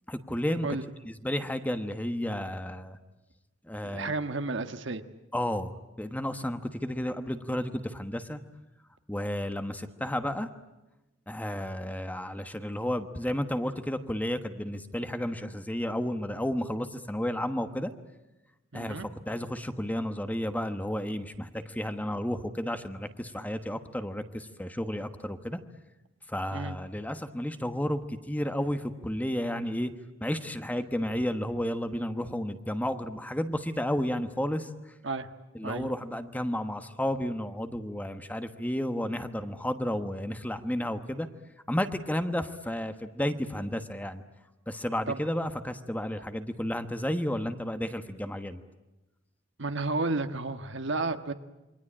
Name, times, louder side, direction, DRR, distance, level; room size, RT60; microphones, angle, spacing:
voice 1, 0.1-0.7 1.0-3.0 3.6-4.1 5.3-8.4 9.1-10.5 11.3-17.9 18.7-25.6 26.3-29.9 30.2-34.9 35.5-41.3 41.7-44.2 44.7-48.6, left 1 dB, 10° left, 9 dB, 1.2 m, -32 dB
voice 2, 3.8-5.0 18.7-19.1 26.5-26.8 35.0-35.3 35.6-35.9 45.1-45.2 49.6-51.3, right 3 dB, 65° right, 8 dB, 1.5 m, -32 dB
28.0 x 23.5 x 8.8 m, 1.0 s
head